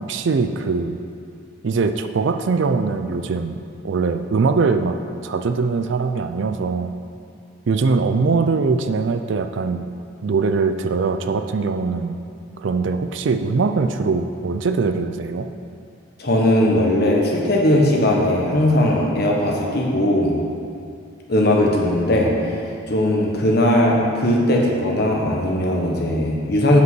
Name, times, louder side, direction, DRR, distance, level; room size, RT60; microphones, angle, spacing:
voice 1, 0.1-1.0 1.6-5.0 5.2-6.9 7.7-9.8 10.2-12.2 12.6-15.5, right 4 dB, 65° right, 8 dB, 0.4 m, -21 dB
voice 2, 16.2-20.3 21.3-22.6 22.9-26.8, left 1 dB, 50° left, -1 dB, 1.2 m, -18 dB
8.2 x 5.2 x 6.2 m, 2.4 s
head